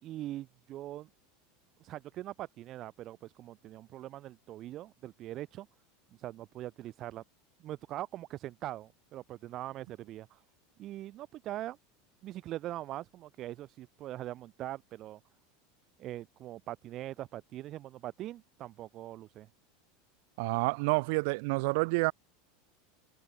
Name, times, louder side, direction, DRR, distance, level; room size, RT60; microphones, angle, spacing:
voice 1, 0.0-1.1 1.8-5.7 6.1-7.2 7.6-10.4 10.8-11.8 12.2-15.2 16.0-19.5, right 14 dB, 35° right, 5.8 m, -42 dB
voice 2, 20.4-22.1, right 29 dB, 60° right, 3.7 m, -28 dB
supercardioid pair, 155°, 0 cm